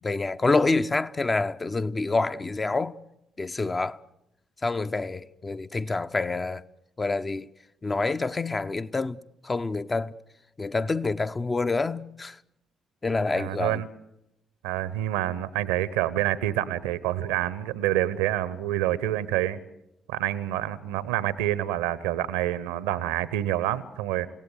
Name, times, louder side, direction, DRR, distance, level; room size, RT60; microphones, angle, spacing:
voice 1, 0.0-3.0 3.4-4.0 4.6-6.6 7.0-7.5 7.8-10.1 10.6-12.4 13.0-13.8, left 3 dB, 25° left, 0.8 m, -27 dB
voice 2, 13.3-13.9 14.6-19.6 20.1-24.3, right 13 dB, 70° right, 0.8 m, -27 dB
29.5 x 17.0 x 7.9 m
figure-of-eight pair, 40°, 0 cm